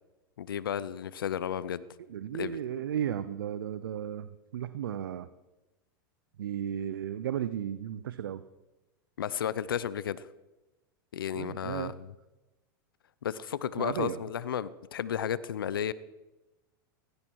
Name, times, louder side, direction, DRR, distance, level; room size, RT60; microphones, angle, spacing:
voice 1, 0.4-1.8 2.3-2.6 9.2-10.2 11.1-11.9 13.2-15.9, left 9 dB, 85° left, 18 dB, 0.7 m, -33 dB
voice 2, 2.1-5.3 6.4-8.4 11.3-11.9 13.8-14.2, right 10 dB, 85° right, 14 dB, 0.7 m, -34 dB
17.0 x 16.0 x 4.7 m, 1.1 s
hypercardioid pair, 105°, 11 cm